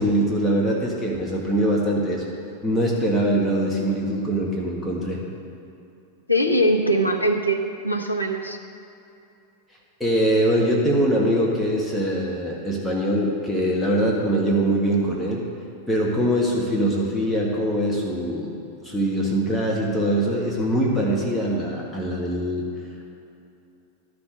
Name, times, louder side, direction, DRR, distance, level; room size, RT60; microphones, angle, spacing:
voice 1, 0.0-2.2 2.6-5.2 10.0-15.4 15.9-22.6, right 1 dB, ahead, -5 dB, 1.6 m, -23 dB
voice 2, 6.3-8.6, equal, 85° left, 2 dB, 0.9 m, -21 dB
12.0 x 6.1 x 6.4 m, 2.7 s
figure-of-eight pair, 90°, 0 cm